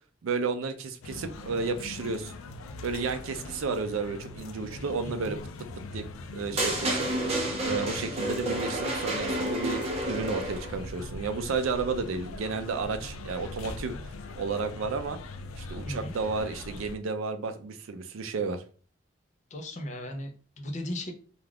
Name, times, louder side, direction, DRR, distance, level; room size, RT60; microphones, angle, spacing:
voice 1, 0.2-2.3 2.8-5.4 5.9-6.0 6.3-7.1 7.6-14.0 14.4-15.2 15.6-18.6, right 4 dB, 80° right, 9 dB, 0.4 m, -32 dB
sound 1, 1.0-17.0, left 2 dB, 90° left, 0.4 m, -41 dB
voice 2, 5.0-5.4 15.8-16.1 19.5-21.1, left 1 dB, 35° left, 4 dB, 0.5 m, -37 dB
sound 2, 6.6-10.8, right 1 dB, 30° right, 0.6 m, -30 dB
2.3 x 2.3 x 3.3 m, 0.40 s
head